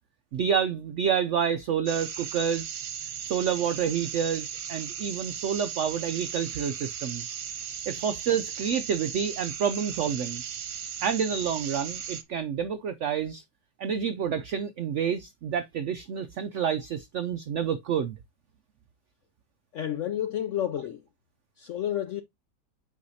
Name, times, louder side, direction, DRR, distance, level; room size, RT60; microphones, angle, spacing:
voice 1, 0.3-2.7 3.2-7.3 7.9-10.4 11.0-13.4 13.8-18.1, right 7 dB, 80° right, 0.6 m, -28 dB
sound 1, 1.9-12.2, right 8 dB, 60° right, 1.2 m, -37 dB
voice 2, 19.7-21.0 21.6-22.2, left 11 dB, 75° left, 0.6 m, -30 dB
8.2 x 4.8 x 2.6 m
omnidirectional pair, 1.8 m